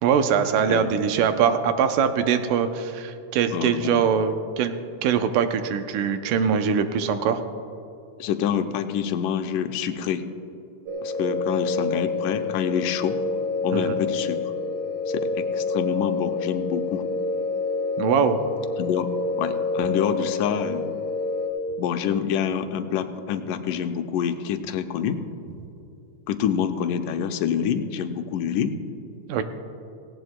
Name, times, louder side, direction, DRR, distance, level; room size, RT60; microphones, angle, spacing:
voice 1, 0.0-4.8 5.0-7.4 13.7-13.8 18.0-18.4 29.3-29.4, right 7 dB, 80° right, 8 dB, 2.2 m, -22 dB
voice 2, 0.6-1.0 3.5-4.1 8.2-10.2 11.0-13.2 13.6-14.4 15.1-17.1 18.8-19.1 19.4-20.9 21.8-25.2 26.3-28.8, left 8 dB, 90° left, 7 dB, 2.2 m, -27 dB
sound 1, 10.9-21.5, left 3 dB, 55° right, 1.9 m, -28 dB
18.0 x 17.0 x 2.2 m, 2.8 s
omnidirectional pair, 3.7 m